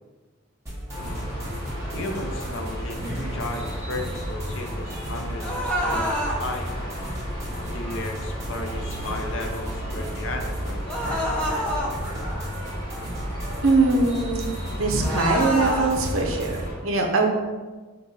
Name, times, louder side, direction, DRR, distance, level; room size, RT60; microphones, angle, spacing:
sound 1, 0.7-16.7, equal, 15° right, 1.2 m, -34 dB
sound 2, 0.9-16.8, equal, 20° left, 1.1 m, -35 dB
voice 1, 1.9-6.7 7.0-7.2 7.7-11.7, left 2 dB, 65° left, 3 dB, 0.6 m, -35 dB
sound 3, 5.4-6.4 10.9-11.9 15.0-15.9, equal, 5° left, 0.6 m, -26 dB
voice 2, 13.6-14.5 14.8-17.3, right 3 dB, 65° right, 2 dB, 0.7 m, -22 dB
5.2 x 2.2 x 4.2 m, 1.3 s
head